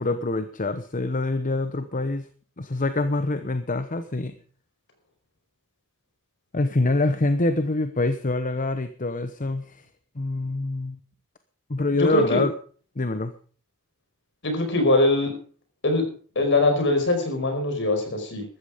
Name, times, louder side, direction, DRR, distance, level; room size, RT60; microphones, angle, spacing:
voice 1, 0.0-2.3 2.6-4.3 6.5-9.8 10.1-11.0 11.7-12.5 13.0-13.3, left 2 dB, 35° left, 10 dB, 1.0 m, -25 dB
voice 2, 11.9-12.4 14.4-15.3 15.8-16.0 16.4-18.4, left 2 dB, 55° left, 5 dB, 5.2 m, -22 dB
15.0 x 13.5 x 5.1 m, 0.42 s
head